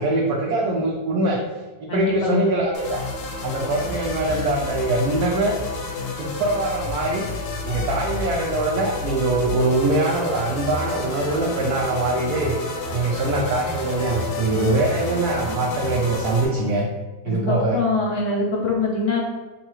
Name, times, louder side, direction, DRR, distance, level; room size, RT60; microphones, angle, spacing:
voice 1, 0.0-1.4 1.8-3.0 3.4-5.6 6.2-7.3 7.6-12.6 12.9-16.8 17.2-17.8, right 2 dB, 70° right, -2 dB, 1.0 m, -23 dB
voice 2, 1.9-2.4 17.3-19.2, left 3 dB, 65° left, -2 dB, 0.7 m, -23 dB
sound 1, 2.7-16.5, left 2 dB, 80° left, 1.5 m, -30 dB
sound 2, 10.5-16.8, right 1 dB, 5° left, 0.4 m, -38 dB
6.4 x 2.3 x 3.0 m, 1.2 s
omnidirectional pair, 2.0 m